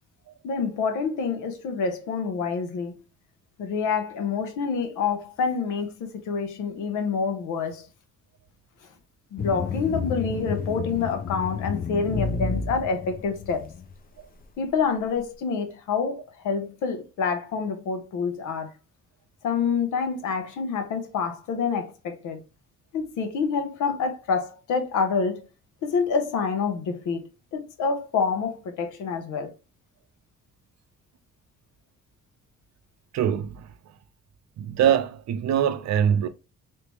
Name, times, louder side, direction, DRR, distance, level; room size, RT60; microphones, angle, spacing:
voice 1, 0.4-3.0 3.6-7.9 9.3-13.7 14.6-18.7 19.4-22.4 22.9-25.5 25.8-29.5, left 5 dB, 85° left, 0.9 m, -27 dB
sound 1, 9.4-13.9, left 5 dB, 30° left, 0.5 m, -31 dB
voice 2, 33.1-33.7 34.6-36.3, right 9 dB, 60° right, 0.5 m, -23 dB
3.4 x 2.8 x 2.9 m
cardioid pair, 90°, 30 cm